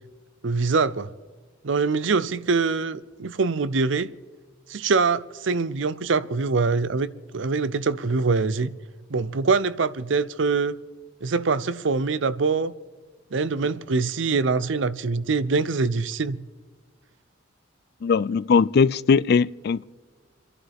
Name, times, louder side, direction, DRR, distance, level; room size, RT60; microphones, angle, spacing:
voice 1, 0.4-1.1 1.6-4.1 4.7-8.7 9.1-10.7 11.2-12.7 13.3-16.4, right 4 dB, 70° right, 0.6 m, -24 dB
voice 2, 18.0-19.8, left 5 dB, 50° left, 0.3 m, -20 dB
29.5 x 11.0 x 3.5 m
head